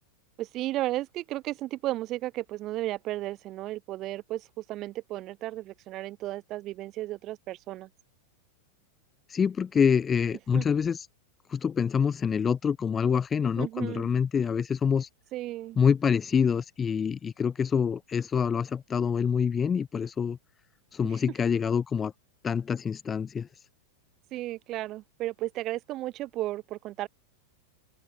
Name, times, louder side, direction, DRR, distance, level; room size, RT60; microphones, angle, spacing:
voice 1, 0.4-7.9 10.5-10.6 13.6-14.1 15.3-15.8 24.3-27.1, right 16 dB, 30° right, 3.2 m, -34 dB
voice 2, 9.3-11.1 11.5-15.1 15.8-20.4 20.9-22.1 22.4-23.5, left 6 dB, 15° left, 1.2 m, -26 dB
supercardioid pair, 155°, 0 cm